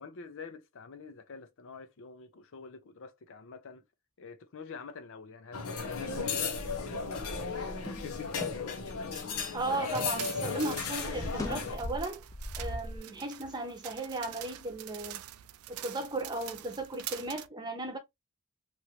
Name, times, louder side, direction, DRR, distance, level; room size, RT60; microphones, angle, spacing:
voice 1, 0.0-3.8 4.2-7.4, left 4 dB, 65° left, 0.5 m, -47 dB
sound 1, 5.5-11.8, left 5 dB, 85° left, 0.9 m, -35 dB
sound 2, 6.1-10.2 10.4-13.0, left 1 dB, 15° left, 0.5 m, -41 dB
voice 2, 9.5-12.3 12.6-15.2 15.7-18.0, right 2 dB, 20° right, 0.8 m, -36 dB
sound 3, 9.6-17.5, right 13 dB, 80° right, 0.4 m, -46 dB
3.1 x 2.6 x 2.8 m
head